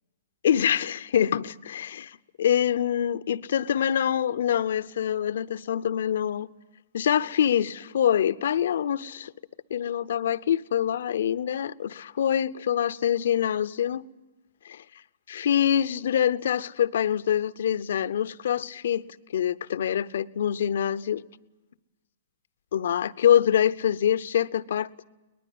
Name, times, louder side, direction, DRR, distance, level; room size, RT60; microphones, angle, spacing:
voice 1, 0.4-6.5 6.9-9.3 9.7-14.1 14.6-14.8 15.3-19.0 19.3-21.2 22.7-24.9, left 9 dB, 65° left, 0.7 m, -25 dB
22.5 x 20.0 x 9.5 m
hypercardioid pair, 115°, 0 cm